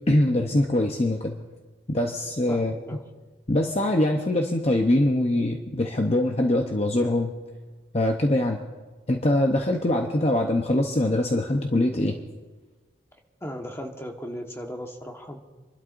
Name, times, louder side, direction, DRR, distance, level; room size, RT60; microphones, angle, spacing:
voice 1, 0.1-1.4 1.9-2.7 3.5-7.4 7.9-8.6 9.1-12.2, left 1 dB, 35° left, 3 dB, 0.8 m, -23 dB
voice 2, 2.5-3.0 13.4-15.4, equal, 15° left, 2 dB, 1.3 m, -36 dB
28.5 x 12.0 x 2.6 m, 1.3 s
head